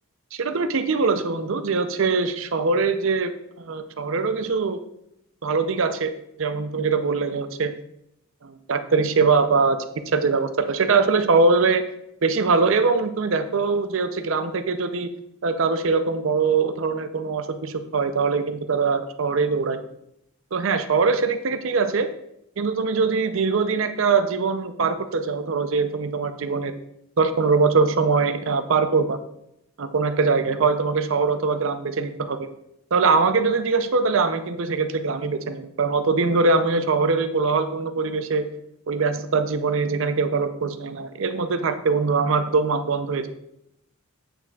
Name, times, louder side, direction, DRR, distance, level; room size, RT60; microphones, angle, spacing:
voice 1, 0.3-3.3 3.6-4.8 5.4-6.1 6.4-7.7 8.4-9.8 10.1-11.8 12.2-15.1 15.4-19.8 20.5-22.1 22.6-26.7 27.2-29.2 29.8-32.5 32.9-38.5 38.9-43.3, right 4 dB, 65° right, 9 dB, 0.5 m, -22 dB
8.5 x 5.9 x 2.3 m, 0.78 s
head